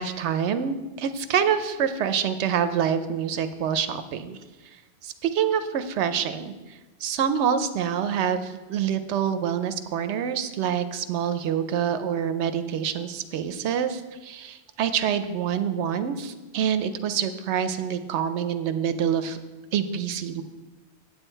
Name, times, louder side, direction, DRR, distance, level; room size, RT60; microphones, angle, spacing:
voice 1, 0.0-4.4 5.0-19.4 19.7-20.4, right 8 dB, 85° right, 10 dB, 0.9 m, -26 dB
8.5 x 8.0 x 4.4 m, 1.2 s
omnidirectional pair, 1.1 m